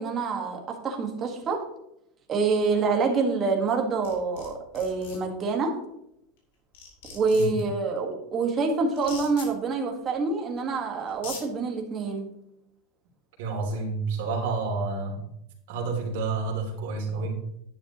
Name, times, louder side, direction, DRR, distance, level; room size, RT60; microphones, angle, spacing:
voice 1, 0.0-1.6 2.3-5.7 7.1-12.3, right 4 dB, 20° right, 2 dB, 1.5 m, -26 dB
sound 1, 4.0-4.5 4.7-5.2 6.4-6.5 6.7-7.6 9.0-9.5 10.6-10.7 11.1-11.4, left 5 dB, 70° left, 4.1 m, -40 dB
voice 2, 13.4-15.2 15.7-17.4, right 4 dB, 65° right, 1 dB, 2.8 m, -29 dB
10.5 x 9.7 x 3.0 m, 0.79 s
supercardioid pair, 170°, 0 cm